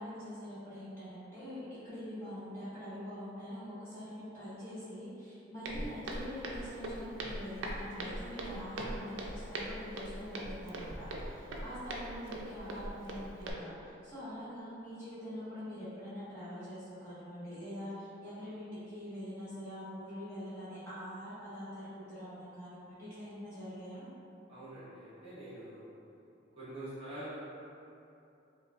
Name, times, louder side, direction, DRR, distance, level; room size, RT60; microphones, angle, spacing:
voice 1, 0.0-24.0, equal, 15° left, -14 dB, 1.5 m, -44 dB
Walk footsteps, 5.6-13.5, right 1 dB, 85° right, 0.4 m, -41 dB
voice 2, 24.5-25.8 26.5-27.4, right 1 dB, 30° right, -13 dB, 0.8 m, -45 dB
5.2 x 2.3 x 2.4 m, 2.7 s
head